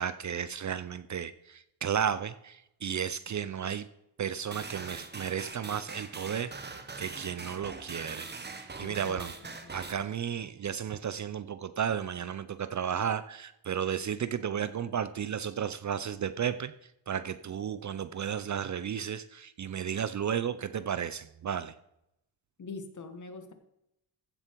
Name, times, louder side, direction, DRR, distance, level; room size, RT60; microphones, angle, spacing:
voice 1, 0.0-3.9 4.2-16.7 17.1-21.7, right 8 dB, 45° right, 13 dB, 0.5 m, -33 dB
sound 1, 4.5-9.9, right 4 dB, 25° right, 1.1 m, -42 dB
voice 2, 8.8-9.3 22.6-23.5, left 4 dB, 45° left, 8 dB, 1.3 m, -43 dB
15.0 x 7.1 x 4.5 m, 0.82 s
wide cardioid pair, 135°, 43 cm